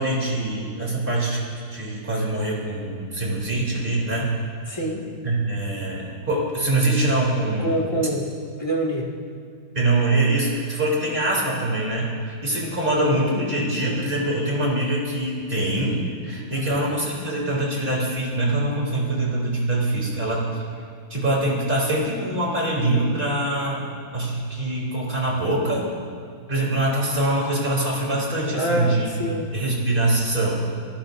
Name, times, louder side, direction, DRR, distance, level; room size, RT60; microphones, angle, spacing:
voice 1, 0.0-1.4 1.7-4.3 5.2-8.0 9.8-20.5 21.1-23.8 24.1-25.9 26.5-29.3 29.5-30.6, right 2 dB, 25° right, -4 dB, 3.7 m, -24 dB
voice 2, 4.7-5.1 7.6-8.3 8.6-9.1 16.5-16.8 28.5-29.5, equal, 15° left, -4 dB, 1.9 m, -25 dB
28.0 x 16.0 x 2.7 m, 2.2 s
omnidirectional pair, 2.2 m